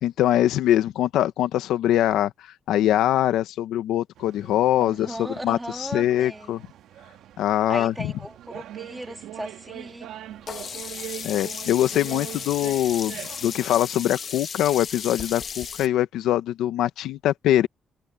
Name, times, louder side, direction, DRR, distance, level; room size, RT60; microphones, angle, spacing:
voice 1, 0.0-6.6 7.4-8.1 11.2-17.7, left 12 dB, 85° left, 1.1 m, -23 dB
sound 1, 4.2-13.7, right 12 dB, 80° right, 1.7 m, -42 dB
voice 2, 4.8-6.5 7.7-10.1, right 1 dB, 5° right, 3.2 m, -37 dB
Sink (filling or washing), 10.5-15.9, left 6 dB, 50° left, 1.4 m, -35 dB
cardioid pair, 90°, 0 cm